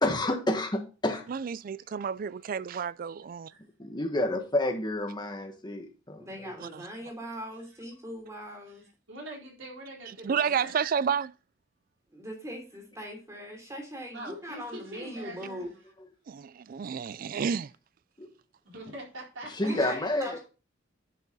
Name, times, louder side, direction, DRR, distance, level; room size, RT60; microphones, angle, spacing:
voice 1, 0.0-1.2 3.9-6.5 18.2-18.3 19.6-20.4, left 1 dB, 25° left, 1.7 m, -29 dB
voice 2, 1.3-3.4 6.6-6.9 10.2-11.3 16.3-17.7, right 7 dB, 45° right, 0.3 m, -30 dB
voice 3, 6.2-8.8 12.1-15.7 19.6-20.4, equal, 15° right, 3.2 m, -40 dB
voice 4, 8.7-10.7 14.1-15.7 18.6-19.8, right 1 dB, 80° right, 4.0 m, -43 dB
10.5 x 6.0 x 4.0 m
head